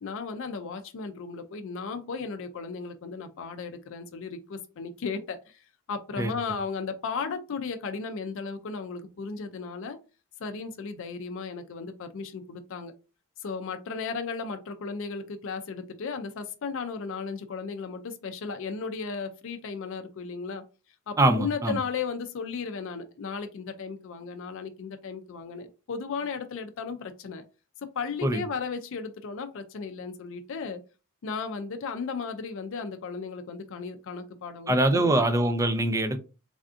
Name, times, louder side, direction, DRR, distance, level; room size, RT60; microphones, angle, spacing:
voice 1, 0.0-10.0 10.4-12.9 13.4-20.6 21.1-27.4 27.9-30.8 31.2-35.2, left 5 dB, 60° left, 0.4 m, -35 dB
voice 2, 21.2-21.8 28.2-28.4 34.7-36.2, right 1 dB, 15° right, 0.4 m, -23 dB
3.3 x 2.6 x 2.4 m
head